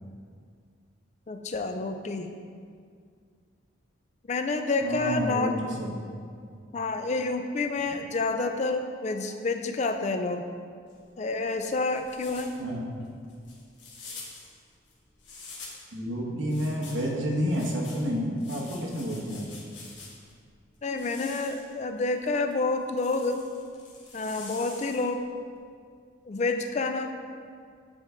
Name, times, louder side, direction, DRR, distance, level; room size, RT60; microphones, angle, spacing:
voice 1, 1.3-2.3 4.3-5.6 6.7-10.5 11.2-12.6 20.8-23.4 24.1-25.3 26.3-27.1, left 3 dB, 35° left, 6 dB, 0.4 m, -29 dB
voice 2, 4.8-5.5 5.8-6.0 6.5-6.6 12.6-13.0 15.9-19.5, equal, 75° right, -1 dB, 1.1 m, -30 dB
sound 1, 10.9-15.9 16.5-20.4 20.8-25.2, left 3 dB, 60° left, 1.3 m, -47 dB
9.0 x 3.7 x 4.3 m, 2.1 s
head